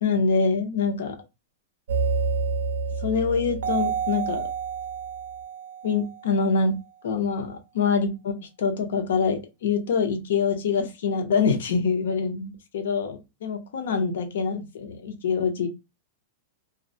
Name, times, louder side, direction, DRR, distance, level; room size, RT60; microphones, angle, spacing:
voice 1, 0.0-1.1 3.0-4.4 5.8-6.8 7.0-15.7, left 5 dB, 75° left, 6 dB, 0.7 m, -25 dB
sound 1, 1.9-6.5, right 5 dB, 85° right, 0.5 m, -29 dB
2.3 x 2.0 x 2.6 m, 0.25 s
supercardioid pair, 165°, 0 cm